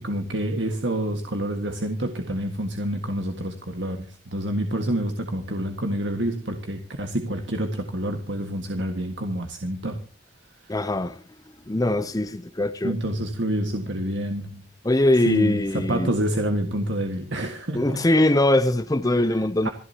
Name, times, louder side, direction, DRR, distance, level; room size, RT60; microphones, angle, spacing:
voice 1, 0.0-10.0 10.6-10.8 12.8-14.7 15.2-18.0 19.1-19.2 19.6-19.7, right 1 dB, 65° right, 1.7 m, -28 dB
voice 2, 10.7-11.2 11.7-12.9 14.8-16.1 17.7-19.7, left 1 dB, 20° left, 0.6 m, -21 dB
27.0 x 11.0 x 2.9 m
head